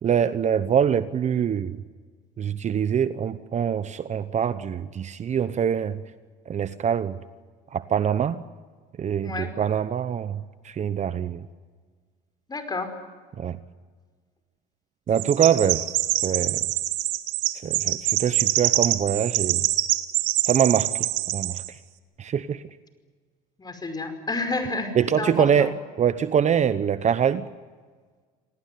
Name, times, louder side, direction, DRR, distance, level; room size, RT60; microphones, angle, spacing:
voice 1, 0.0-1.8 2.4-6.0 6.5-7.2 7.7-8.4 9.0-10.4 10.6-11.4 13.4-13.6 15.1-15.8 16.2-16.6 17.6-19.7 20.5-20.9 21.3-21.6 22.2-22.6 25.0-25.7 26.0-27.5, right 8 dB, 40° right, 13 dB, 1.0 m, -24 dB
voice 2, 9.2-9.5 12.5-12.9 23.6-25.7, left 3 dB, 20° left, 8 dB, 5.2 m, -30 dB
Chirp tweet, 15.2-21.7, right 16 dB, 80° right, 1.7 m, -25 dB
26.5 x 18.5 x 9.5 m, 1.5 s
supercardioid pair, 95°, 18 cm